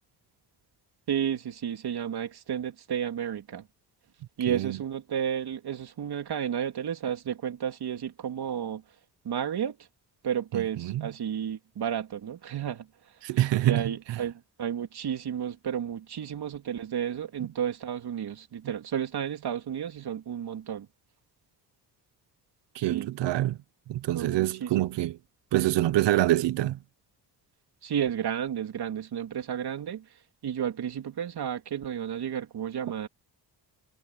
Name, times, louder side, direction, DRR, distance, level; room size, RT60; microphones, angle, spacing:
voice 1, 1.1-3.7 4.4-8.8 9.2-9.8 10.2-12.9 13.6-20.9 22.8-23.1 24.1-24.7 27.8-30.1 30.4-33.1, right 9 dB, 65° right, 3.2 m, -32 dB
voice 2, 4.5-4.8 10.5-11.0 13.2-13.8 22.7-23.6 23.9-25.1 25.5-26.8, right 15 dB, 85° right, 1.0 m, -25 dB
cardioid pair, 85°, 42 cm